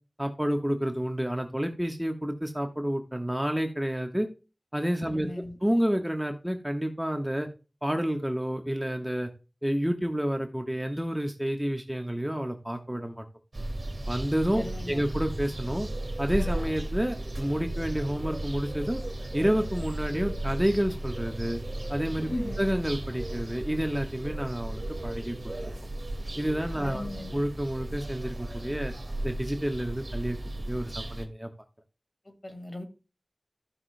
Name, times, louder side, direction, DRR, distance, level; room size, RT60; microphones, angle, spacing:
voice 1, 0.2-4.3 4.7-5.3 5.6-7.5 7.8-9.3 9.6-13.2 14.1-15.9 16.2-19.0 19.3-21.6 21.9-22.3 22.6-25.7 26.4-27.0 27.3-28.9 29.2-30.4 30.7-31.5, equal, 5° right, 4 dB, 1.2 m, -29 dB
voice 2, 5.1-5.6 14.5-15.0 22.3-22.6 26.8-27.4 32.3-32.8, left 1 dB, 40° left, 6 dB, 1.8 m, -37 dB
sound 1, 13.5-31.2, right 1 dB, 65° right, 1.7 m, -35 dB
15.0 x 6.0 x 2.2 m, 0.32 s
wide cardioid pair, 50°, 0 cm